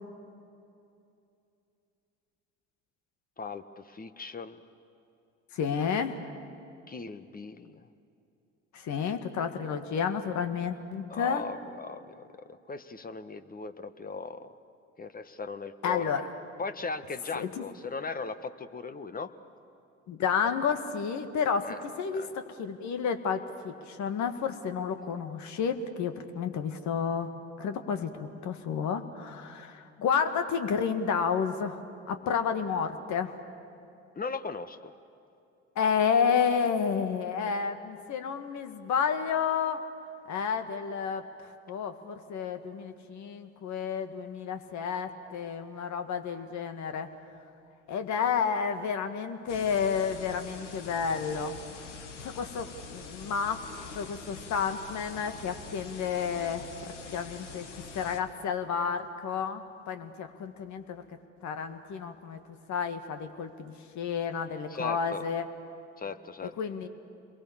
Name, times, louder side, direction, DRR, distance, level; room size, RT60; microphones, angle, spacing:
voice 1, 3.4-4.6 6.9-7.9 11.1-14.5 15.0-16.1 16.6-19.3 21.6-21.8 22.1-22.3 34.2-34.9 64.7-65.2 66.0-66.5, left 4 dB, 25° left, 11 dB, 1.3 m, -38 dB
voice 2, 5.5-6.2 8.7-11.4 15.8-16.3 17.3-17.6 20.1-27.3 27.6-31.8 32.1-33.3 35.8-39.8 40.3-41.3 41.7-47.1 47.9-51.6 52.2-53.6 53.9-61.0 61.4-62.4 62.7-65.4 66.6-66.9, left 6 dB, 55° left, 8 dB, 2.0 m, -31 dB
sound 1, 49.5-58.2, left 4 dB, 85° left, 1.6 m, -45 dB
29.0 x 22.5 x 7.3 m, 2.7 s
hypercardioid pair, 65°, 35 cm